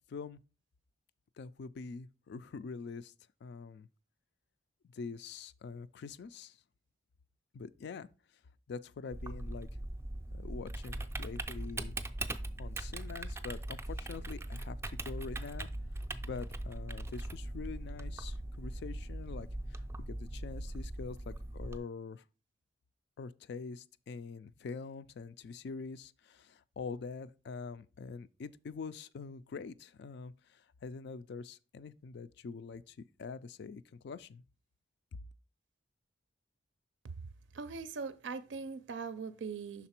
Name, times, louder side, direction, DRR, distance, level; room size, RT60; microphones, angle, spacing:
voice 1, 0.1-0.4 1.4-3.1 3.4-3.9 4.9-6.6 7.5-8.1 8.7-9.7 10.3-12.0 12.6-15.7 16.2-22.2 23.2-34.4 35.1-35.2, left 5 dB, 65° left, 0.4 m, -45 dB
Typing, 9.1-21.8, right 1 dB, 15° right, 0.4 m, -40 dB
voice 2, 37.5-39.9, right 5 dB, 75° right, 0.4 m, -41 dB
5.9 x 3.9 x 4.3 m
head